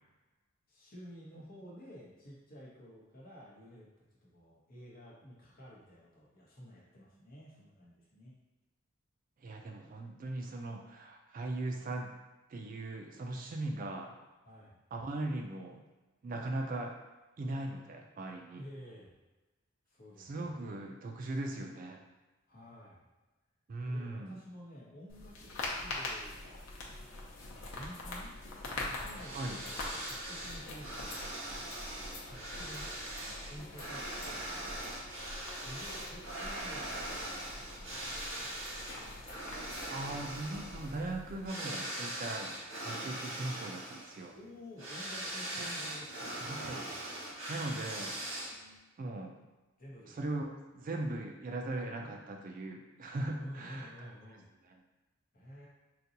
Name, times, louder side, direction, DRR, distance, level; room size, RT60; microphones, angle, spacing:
voice 1, 0.7-8.3 14.4-14.8 18.5-19.1 19.9-20.8 22.5-23.1 23.8-26.4 27.7-28.3 28.8-31.2 32.3-32.9 33.5-34.5 35.5-38.6 39.8-40.3 44.3-46.6 47.9-48.1 49.8-50.2 53.3-54.5 55.3-55.7, equal, 45° left, -5 dB, 0.9 m, -51 dB
voice 2, 9.4-12.1 12.5-14.1 14.9-15.8 16.2-17.0 17.4-18.6 20.2-22.0 23.7-24.3 29.3-29.6 39.9-44.3 45.6-45.7 46.4-46.9 47.5-48.2 49.0-49.4 50.1-54.1 54.6-54.8, right 2 dB, 45° right, 3 dB, 0.3 m, -39 dB
sound 1, 25.1-41.5, left 2 dB, 85° left, 0.6 m, -44 dB
sound 2, 29.2-48.8, right 1 dB, 75° right, 1.1 m, -41 dB
3.9 x 2.2 x 2.7 m, 1.1 s
head